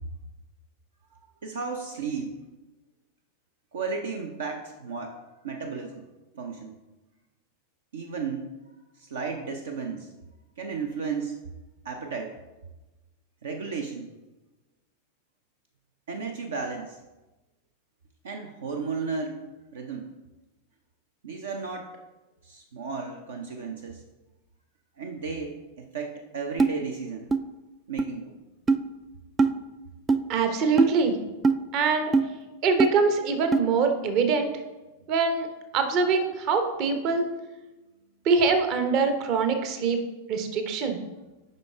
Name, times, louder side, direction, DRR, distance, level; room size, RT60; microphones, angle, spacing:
voice 1, 1.4-2.4 3.7-5.2 5.4-6.1 6.3-6.7 7.9-8.5 9.0-10.1 10.6-11.4 11.8-12.3 13.4-14.1 16.1-17.0 18.2-19.4 19.7-20.1 21.2-21.9 22.4-24.0 25.0-27.3 27.9-28.3, right 5 dB, 65° right, 4 dB, 0.6 m, -34 dB
sound 1, 26.6-26.7 27.3-27.4 28.0-28.1 28.7-28.8 29.4-29.5 30.1-30.2 30.8-30.9 31.4-31.6 32.1-32.3 32.8-32.9 33.5-33.6, right 4 dB, 15° right, 0.3 m, -21 dB
voice 2, 30.3-31.2 31.7-32.1 32.6-34.5 35.1-35.5 35.7-37.3 38.2-40.0 40.3-41.0, right 4 dB, 40° right, 6 dB, 0.9 m, -23 dB
7.8 x 5.5 x 3.6 m, 1.1 s
figure-of-eight pair, 90°, 0 cm